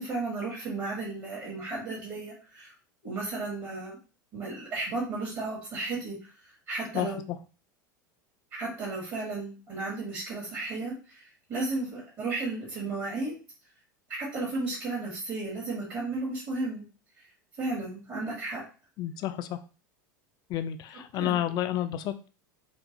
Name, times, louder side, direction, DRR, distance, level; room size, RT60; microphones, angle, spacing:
voice 1, 0.0-2.7 3.0-3.9 4.3-7.2 8.5-13.4 14.1-16.8 17.6-18.6 21.1-21.4, right 3 dB, 40° right, -4 dB, 1.9 m, -34 dB
voice 2, 6.9-7.4 19.0-19.6 20.5-22.3, left 12 dB, 40° left, 10 dB, 0.4 m, -30 dB
4.4 x 2.5 x 2.8 m, 0.34 s
figure-of-eight pair, 80°, 11 cm